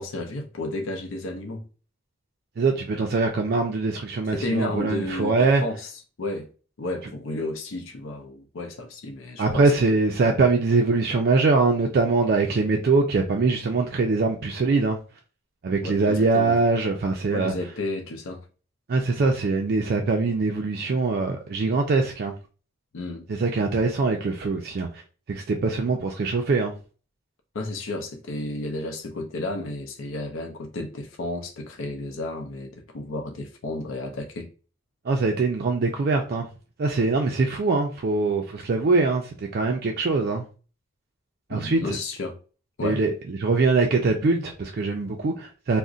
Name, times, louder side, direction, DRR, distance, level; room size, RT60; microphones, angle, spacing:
voice 1, 0.0-1.7 4.3-5.9 6.2-6.5 6.8-9.9 15.8-16.6 17.3-18.5 22.9-23.3 27.5-34.5 37.2-37.3 41.5-42.4 42.8-43.0, left 2 dB, 90° left, 0.5 m, -32 dB
voice 2, 2.6-5.6 9.4-15.0 15.6-17.5 18.9-22.3 23.3-24.9 25.3-26.7 35.1-36.5 36.8-40.4 41.5-42.0 42.8-45.8, right 3 dB, 50° right, 0.4 m, -23 dB
2.4 x 2.1 x 3.7 m
head